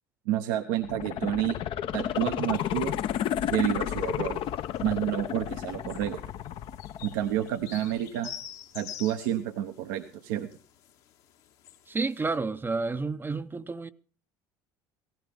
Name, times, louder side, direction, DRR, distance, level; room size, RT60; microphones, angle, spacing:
voice 1, 0.3-1.6 1.9-3.0 3.5-4.4 4.8-6.2 7.0-8.3 8.7-10.5, right 12 dB, 75° right, 0.9 m, -29 dB
sound 1, 0.8-7.8 8.2-8.3, left 10 dB, 55° left, 0.7 m, -32 dB
sound 2, 2.5-12.3, left 9 dB, 70° left, 1.7 m, -49 dB
voice 2, 11.9-13.9, right 3 dB, 20° right, 0.7 m, -30 dB
17.0 x 15.0 x 3.5 m
hypercardioid pair, 70°, 11 cm